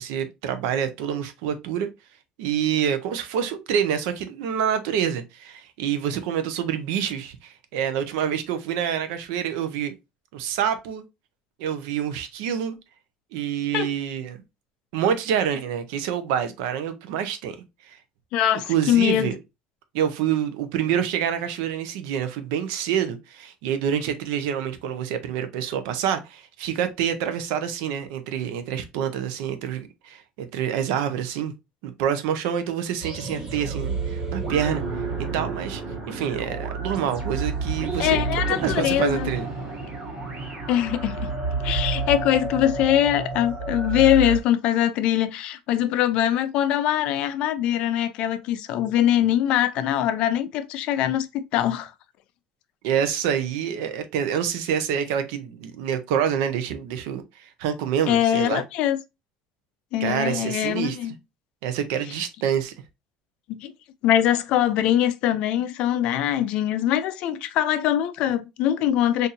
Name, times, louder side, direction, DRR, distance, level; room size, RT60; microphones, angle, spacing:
voice 1, 0.0-1.9 2.4-9.9 10.3-11.0 11.6-12.8 13.3-14.4 14.9-17.6 17.9-18.0 18.7-19.4 19.9-31.5 31.8-34.8 35.2-35.8 36.1-38.2 38.6-39.5 52.8-58.6 60.0-61.1 61.6-62.7, right 8 dB, 90° right, 0.6 m, -27 dB
voice 2, 18.3-19.3 38.0-39.3 40.7-41.3 41.6-51.9 58.1-59.0 59.9-61.1 63.5-63.7 64.0-69.3, left 11 dB, 50° left, 0.4 m, -22 dB
sound 1, 33.0-44.4, right 4 dB, 30° right, 1.2 m, -30 dB
4.0 x 2.6 x 2.5 m
cardioid pair, 170°, 2 cm